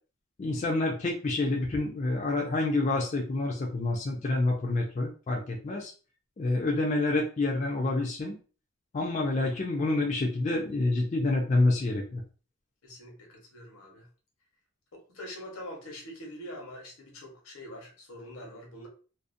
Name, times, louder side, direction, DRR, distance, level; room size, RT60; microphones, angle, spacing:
voice 1, 0.4-5.9 6.4-8.3 8.9-12.2, left 2 dB, 35° left, 0 dB, 0.4 m, -28 dB
voice 2, 9.2-9.6 12.8-14.1 14.9-18.9, equal, 85° left, 1 dB, 0.9 m, -44 dB
2.5 x 2.0 x 2.5 m, 0.37 s
head